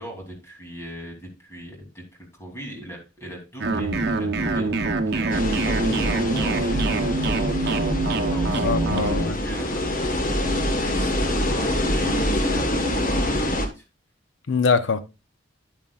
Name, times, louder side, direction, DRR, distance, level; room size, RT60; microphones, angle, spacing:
voice 1, 0.0-13.8, equal, 15° left, 3.0 m, -40 dB
sound 1, 3.6-9.2, right 2 dB, 60° right, 0.9 m, -24 dB
sound 2, 5.3-13.7, left 1 dB, 45° left, 1.4 m, -25 dB
voice 2, 8.5-9.4 14.5-15.0, left 5 dB, 85° left, 0.8 m, -23 dB
9.8 x 8.9 x 2.4 m
head